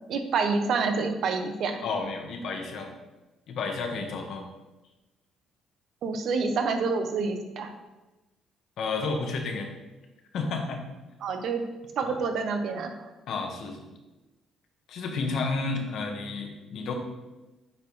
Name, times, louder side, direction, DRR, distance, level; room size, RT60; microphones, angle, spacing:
voice 1, 0.1-1.8 6.0-7.7 11.2-11.6 12.0-12.9, right 4 dB, 65° right, 6 dB, 0.8 m, -27 dB
voice 2, 1.8-2.9 3.5-4.4 8.8-9.8 10.3-10.8 12.1-12.2 13.3-13.8 14.9-16.9, left 4 dB, 70° left, 3 dB, 1.1 m, -31 dB
8.7 x 4.3 x 3.2 m, 1.1 s
cardioid pair, 95°, 0 cm